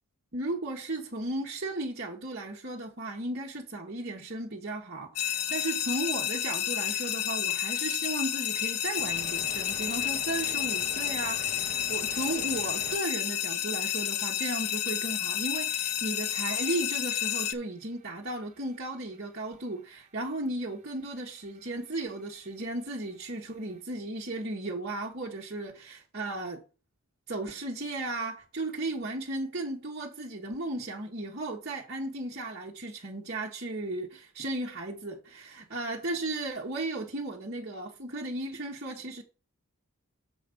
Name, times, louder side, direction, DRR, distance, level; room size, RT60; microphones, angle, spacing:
voice 1, 0.3-26.6 27.3-39.2, right 2 dB, 50° right, 1.3 m, -35 dB
sound 1, 5.2-17.5, left 11 dB, 90° left, 0.6 m, -31 dB
sound 2, 9.0-13.0 13.4-14.3 14.5-14.6 14.9-16.7 17.1-23.8, right 3 dB, 30° right, 0.9 m, -48 dB
7.2 x 5.1 x 5.2 m
head